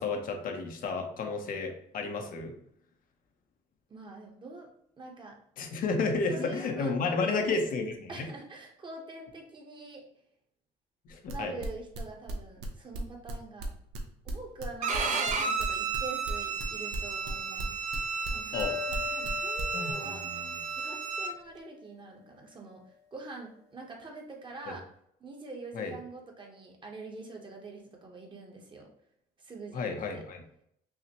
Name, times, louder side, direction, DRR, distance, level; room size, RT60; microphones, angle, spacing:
voice 1, 0.0-2.5 5.6-8.3 11.1-11.6 18.5-18.7 19.7-20.6 25.7-25.9 29.7-30.4, left 4 dB, 55° left, 4 dB, 0.7 m, -32 dB
voice 2, 3.9-4.7 5.0-5.4 6.3-7.6 8.1-10.0 11.3-13.7 14.2-17.7 18.3-20.2 20.7-24.8 25.2-28.9 29.4-30.2, right 3 dB, 30° right, 1 dB, 0.9 m, -44 dB
sound 1, 11.1-14.7 14.9-18.6 18.9-19.3 19.6-19.9, right 2 dB, 85° right, 0.7 m, -40 dB
Bowed string instrument, 14.8-21.3, right 5 dB, 45° right, 0.5 m, -33 dB
sound 2, 18.5-22.0, left 7 dB, 80° left, 1.2 m, -42 dB
5.6 x 2.1 x 2.9 m, 0.73 s
cardioid pair, 110°, 17 cm